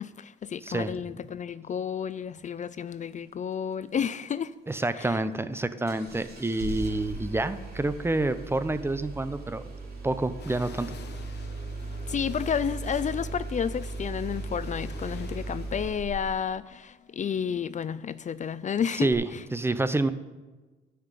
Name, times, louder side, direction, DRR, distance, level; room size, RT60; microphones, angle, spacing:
voice 1, 0.0-4.5 5.0-5.2 12.1-19.4, left 7 dB, 40° left, 0.4 m, -31 dB
voice 2, 4.7-9.6 10.0-11.0 19.0-20.1, right 2 dB, 10° right, 0.7 m, -28 dB
Engine starting, 5.9-16.5 19.1-19.2, right 2 dB, 50° right, 3.4 m, -37 dB
sound 1, 10.4-16.1, left 7 dB, 60° left, 1.0 m, -50 dB
12.0 x 5.9 x 8.3 m
cardioid pair, 90°, 20 cm